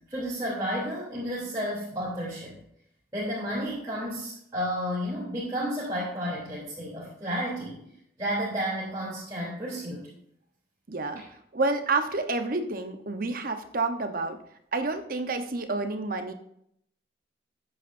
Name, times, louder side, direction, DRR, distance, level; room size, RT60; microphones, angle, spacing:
voice 1, 0.0-2.6 3.1-7.8 8.2-10.1, equal, 20° right, -8 dB, 3.2 m, -32 dB
voice 2, 10.9-11.2 11.5-14.4 14.7-16.3, right 3 dB, 50° right, 7 dB, 1.0 m, -29 dB
14.0 x 8.4 x 2.6 m, 0.72 s
head